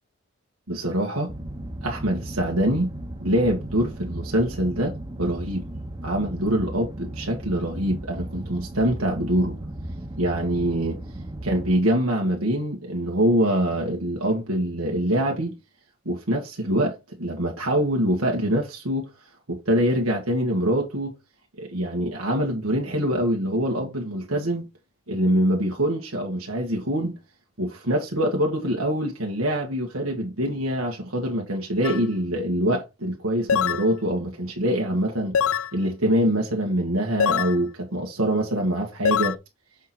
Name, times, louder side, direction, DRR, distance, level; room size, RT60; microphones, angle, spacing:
voice 1, 0.7-1.3 1.8-2.9 3.2-5.7 6.0-9.6 10.2-11.0 11.4-15.5 16.1-19.0 19.5-21.1 21.6-24.7 25.1-27.2 27.6-35.4 35.7-39.4, right 1 dB, 90° right, 1.7 m, -24 dB
sound 1, 1.3-11.8, right 1 dB, 20° right, 0.9 m, -36 dB
sound 2, 31.8-32.0 33.5-33.9 35.3-35.7 37.2-37.6 39.1-39.4, left 7 dB, 80° left, 0.5 m, -23 dB
7.2 x 4.3 x 4.4 m
head